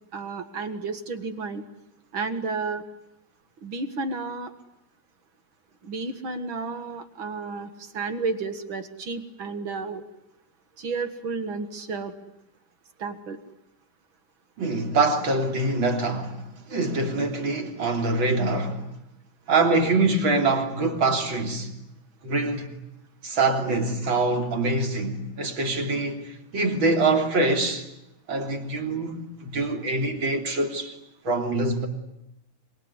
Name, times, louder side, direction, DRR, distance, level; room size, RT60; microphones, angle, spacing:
voice 1, 0.1-1.6 2.1-2.8 3.6-4.5 5.8-10.0 10.8-12.1 13.0-13.4, right 4 dB, 55° right, 1.5 m, -32 dB
voice 2, 14.6-18.9 19.5-21.7 22.2-22.7 23.2-27.9 28.3-30.9 31.2-31.9, right 3 dB, 35° right, 3.3 m, -24 dB
25.5 x 24.0 x 9.7 m
omnidirectional pair, 4.5 m